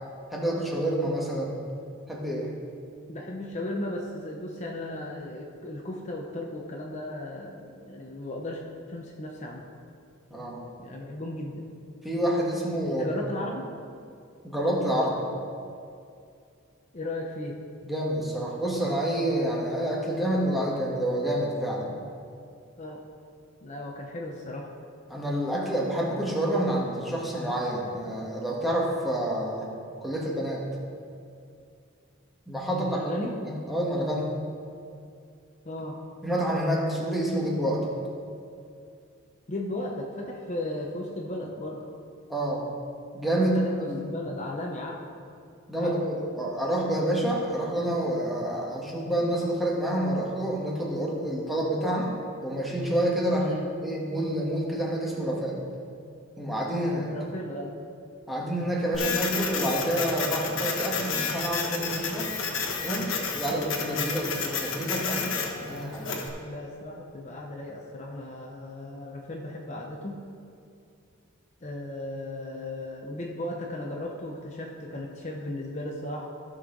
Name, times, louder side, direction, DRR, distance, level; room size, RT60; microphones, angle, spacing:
voice 1, 0.3-1.6 2.1-2.5 10.3-10.6 12.0-13.0 14.4-15.2 17.8-22.0 25.1-29.7 30.0-30.6 32.5-33.0 33.4-34.3 36.2-37.9 42.3-42.7 43.1-44.0 45.7-52.1 52.4-53.6 53.8-55.6 56.4-57.1 58.3-62.3 62.8-66.2, right 1 dB, ahead, -3 dB, 1.4 m, -28 dB
voice 2, 3.1-8.6 8.9-9.6 10.8-11.7 12.8-13.6 16.9-17.6 22.8-23.0 23.6-24.7 32.7-33.4 35.6-36.0 39.5-41.9 43.5-45.0 45.7-45.9 53.4-53.7 57.1-57.7 66.4-70.2 71.6-76.3, left 1 dB, 35° left, -1 dB, 0.8 m, -36 dB
Printer, 58.9-66.3, left 5 dB, 70° left, 1.2 m, -31 dB
15.0 x 5.7 x 3.8 m, 2.4 s
head